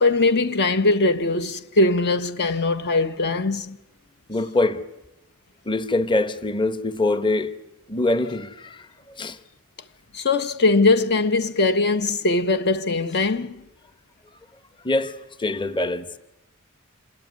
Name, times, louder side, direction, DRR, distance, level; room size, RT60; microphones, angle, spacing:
voice 1, 0.0-3.8 10.1-13.6, left 3 dB, 50° left, 0.9 m, -21 dB
voice 2, 4.3-4.8 5.7-7.5 7.9-9.4 14.8-16.2, left 2 dB, 20° left, 0.9 m, -24 dB
27.5 x 20.5 x 9.4 m
head